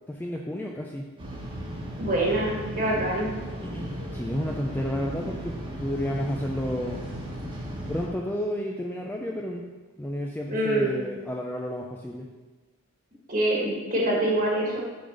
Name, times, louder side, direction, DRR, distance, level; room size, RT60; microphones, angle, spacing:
voice 1, 0.1-1.1 3.6-7.1 7.9-9.6 10.0-12.3, equal, 10° left, 0 dB, 0.4 m, -31 dB
sound 1, 1.2-8.1, right 1 dB, 25° right, 1.2 m, -36 dB
voice 2, 2.0-3.3 10.5-10.9 13.3-14.8, right 1 dB, 40° right, -3 dB, 1.6 m, -25 dB
6.8 x 3.9 x 6.5 m, 1.3 s
head